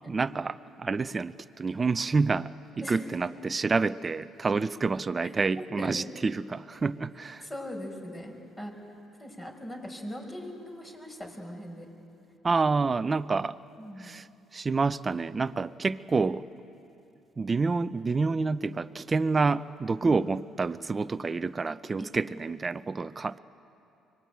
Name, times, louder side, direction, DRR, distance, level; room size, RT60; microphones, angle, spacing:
voice 1, 0.1-2.5 2.8-7.5 12.4-13.6 14.0-14.3 14.5-16.4 17.4-23.4, right 4 dB, 30° right, 13 dB, 0.6 m, -28 dB
voice 2, 5.6-5.9 7.4-8.7 9.2-11.9 13.8-14.1 22.0-22.1, equal, 20° left, 2 dB, 5.0 m, -40 dB
24.0 x 19.5 x 8.9 m, 2.7 s
supercardioid pair, 80°, 0 cm